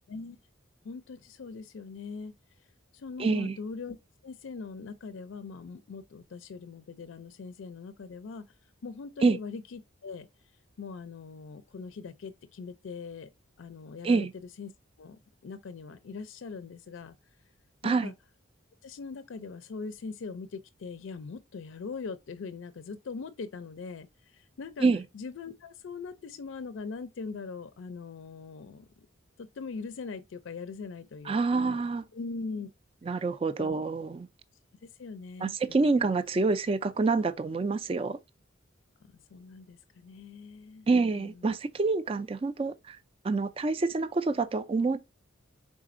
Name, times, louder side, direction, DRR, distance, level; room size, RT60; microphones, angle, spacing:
voice 1, 0.8-2.3 2.9-4.0 4.2-8.4 8.8-10.3 10.8-13.3 13.6-14.7 15.0-17.1 17.8-18.1 18.8-24.9 25.1-29.1 29.4-31.8 32.1-32.7 33.6-33.7 34.8-35.5 36.0-36.1 39.0-40.9 41.1-41.6, left 4 dB, 70° left, 0.4 m, -41 dB
voice 2, 3.2-3.6 9.2-9.4 14.0-14.3 17.8-18.1 24.8-25.0 31.3-32.0 33.1-34.3 35.4-38.2 40.9-43.0 43.2-45.0, right 3 dB, 30° right, 0.3 m, -27 dB
4.9 x 3.6 x 2.5 m
head